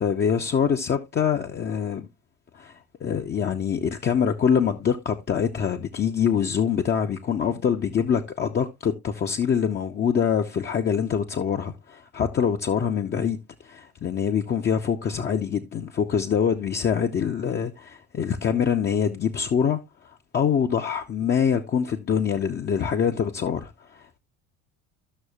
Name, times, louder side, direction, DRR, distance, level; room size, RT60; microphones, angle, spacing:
voice 1, 0.0-2.1 2.5-2.7 3.0-19.8 20.3-24.2, left 7 dB, 25° left, 0.6 m, -24 dB
13.0 x 6.1 x 2.3 m
figure-of-eight pair, 60°, 44 cm